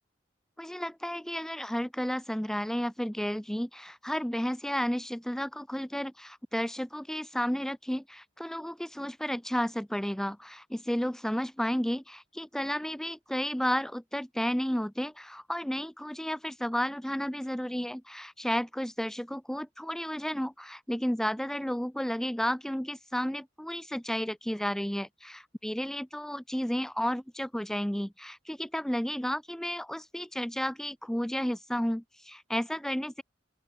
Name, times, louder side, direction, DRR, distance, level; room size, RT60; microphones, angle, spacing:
voice 1, 0.6-33.2, equal, 5° left, 0.5 m, -32 dB
open air
head